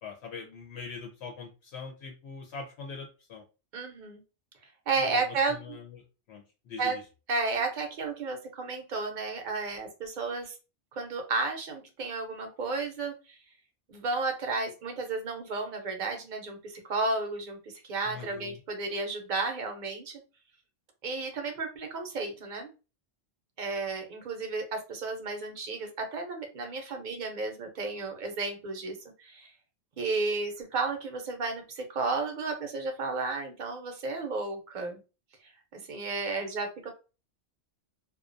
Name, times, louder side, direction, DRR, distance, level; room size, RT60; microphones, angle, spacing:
voice 1, 0.0-3.4 5.0-6.0 6.3-7.0 18.0-18.6, left 5 dB, 75° left, 1 dB, 0.8 m, -42 dB
voice 2, 3.7-4.2 4.9-5.8 6.8-7.0 7.3-10.6 10.9-13.4 13.9-20.2 21.0-22.7 23.6-29.5 30.0-35.0 35.7-36.9, right 3 dB, 50° right, 4 dB, 0.7 m, -33 dB
2.3 x 2.2 x 2.5 m, 0.32 s
omnidirectional pair, 1.1 m